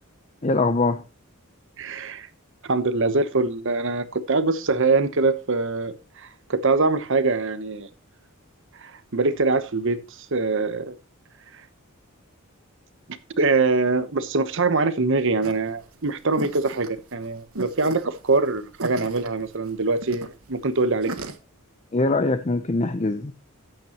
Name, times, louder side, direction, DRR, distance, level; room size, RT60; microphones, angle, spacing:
voice 1, 0.4-1.0 21.9-23.3, left 3 dB, 30° left, 0.6 m, -22 dB
voice 2, 1.8-2.3 2.6-7.9 8.8-10.9 11.5-11.6 13.4-21.1, right 3 dB, 60° right, 1.0 m, -23 dB
sound 1, 15.4-21.4, right 2 dB, 80° right, 1.4 m, -37 dB
13.5 x 9.2 x 3.0 m
head